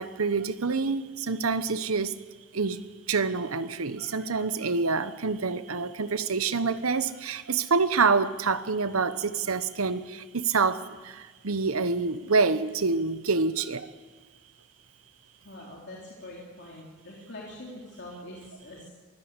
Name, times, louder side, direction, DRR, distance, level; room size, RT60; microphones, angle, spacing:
voice 1, 0.0-2.1 2.5-2.8 3.1-13.9, right 4 dB, 80° right, 13 dB, 1.1 m, -27 dB
voice 2, 4.0-4.3 15.4-18.9, left 1 dB, 55° left, -3 dB, 3.6 m, -44 dB
23.5 x 15.5 x 8.2 m, 1.3 s
head